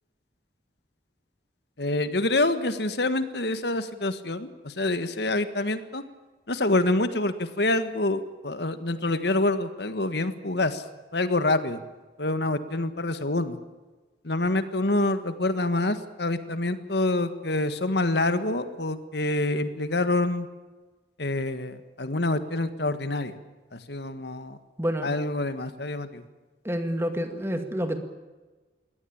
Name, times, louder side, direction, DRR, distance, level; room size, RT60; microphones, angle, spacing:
voice 1, 1.8-6.0 6.5-10.8 11.1-11.8 12.2-13.6 14.2-20.5 21.2-23.4 23.7-24.6 25.0-26.2, left 2 dB, 70° left, 11 dB, 1.6 m, -26 dB
voice 2, 24.8-25.1 26.6-28.0, equal, 15° right, 7 dB, 2.1 m, -28 dB
23.0 x 18.0 x 8.8 m, 1.3 s
head